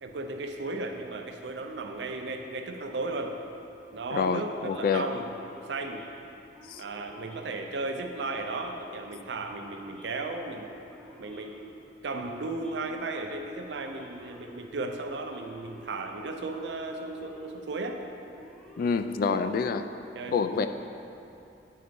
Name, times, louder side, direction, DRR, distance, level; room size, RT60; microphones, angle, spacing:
voice 1, 0.0-3.4 3.9-5.3 5.7-6.0 6.8-10.7 11.2-11.6 12.0-18.0 19.3-19.5 20.1-20.7, right 2 dB, 75° right, 4 dB, 0.6 m, -35 dB
voice 2, 4.1-5.1 6.7-6.8 18.8-19.9 20.3-20.7, left 5 dB, 55° left, 9 dB, 0.3 m, -27 dB
Male speech man speaking / Siren, 5.1-19.8, equal, 5° left, 0.7 m, -53 dB
8.4 x 3.9 x 5.1 m, 2.7 s
head